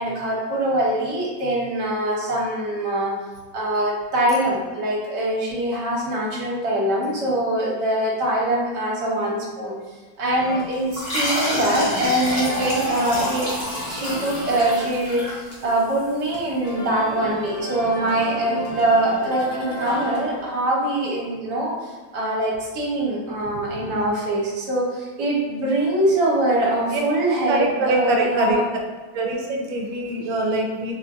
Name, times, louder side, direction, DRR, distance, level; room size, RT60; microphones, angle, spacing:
voice 1, 0.0-3.1 3.5-9.7 10.2-28.6, right 1 dB, 65° right, -4 dB, 1.4 m, -23 dB
sound 1, 10.3-20.6, left 1 dB, 60° left, 1.2 m, -35 dB
sound 2, 10.9-16.0, left 1 dB, 30° left, 0.7 m, -27 dB
voice 2, 27.5-28.6 29.1-30.9, right 2 dB, 80° right, 0 dB, 1.3 m, -23 dB
4.0 x 2.5 x 2.4 m, 1.3 s
omnidirectional pair, 2.1 m